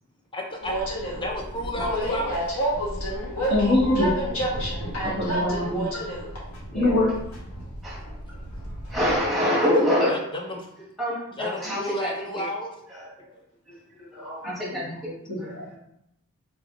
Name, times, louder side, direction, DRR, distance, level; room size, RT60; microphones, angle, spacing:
voice 1, 0.3-0.8 1.2-2.4 9.4-9.6 10.1-10.2 10.5-10.7 11.4-12.7, left 1 dB, 20° left, 1 dB, 0.5 m, -31 dB
Train, 0.6-9.2, right 1 dB, 80° left, 1.2 m, -30 dB
voice 2, 3.5-4.2 5.0-5.9 6.7-7.1 14.4-14.5 14.8-15.0 15.3-15.8, left 1 dB, 55° left, -5 dB, 1.3 m, -23 dB
voice 3, 6.7-7.0 7.8-8.0 8.9-10.3 11.0-12.4 12.9-13.4 13.7-15.8, equal, ahead, -6 dB, 1.2 m, -27 dB
4.1 x 3.3 x 2.4 m, 0.78 s
head